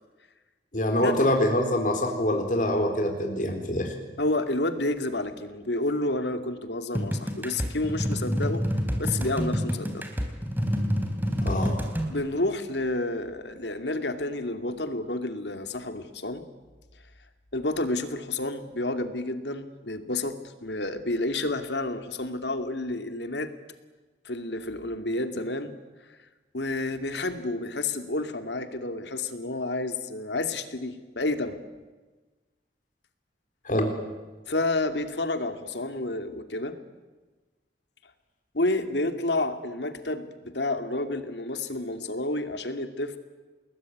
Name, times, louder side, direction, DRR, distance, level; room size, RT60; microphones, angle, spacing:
voice 1, 0.7-3.9 11.4-11.8 33.7-33.9, left 1 dB, 45° left, 4 dB, 3.9 m, -25 dB
voice 2, 4.2-8.6 9.0-10.1 12.1-16.4 17.5-23.5 24.2-25.7 26.5-31.6 34.5-36.7 38.5-43.2, left 2 dB, 75° left, 8 dB, 2.5 m, -30 dB
sound 1, 6.9-12.1, equal, 10° right, 3.5 m, -28 dB
29.0 x 20.5 x 9.4 m, 1.3 s
head